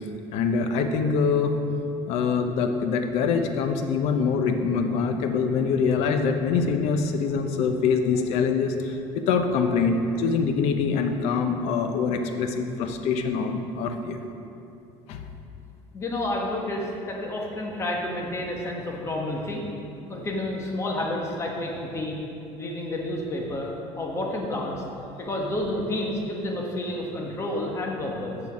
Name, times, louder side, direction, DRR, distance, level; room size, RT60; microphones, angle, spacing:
voice 1, 0.3-1.5 2.1-14.2 15.1-15.2, left 5 dB, 70° left, 6 dB, 0.7 m, -24 dB
voice 2, 15.9-19.6 20.1-22.2 22.6-24.8 25.2-28.4, left 1 dB, 25° left, -1 dB, 1.3 m, -30 dB
6.9 x 6.3 x 5.8 m, 2.7 s
cardioid pair, 145°, 11 cm